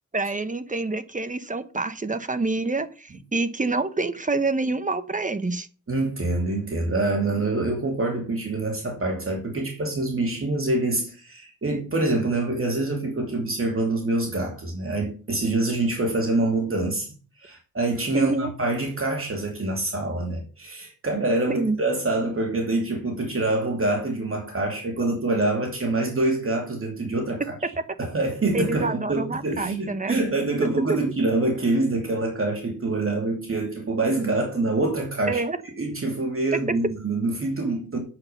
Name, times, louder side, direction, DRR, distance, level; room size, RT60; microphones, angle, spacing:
voice 1, 0.1-5.7 18.1-18.5 21.5-21.8 28.5-30.2 30.9-31.0 35.3-35.6, right 3 dB, 25° right, 1.0 m, -27 dB
voice 2, 5.9-27.7 28.0-35.4 35.8-38.0, right 2 dB, 45° right, 2.7 m, -25 dB
8.8 x 7.5 x 6.9 m
wide cardioid pair, 155°, 30 cm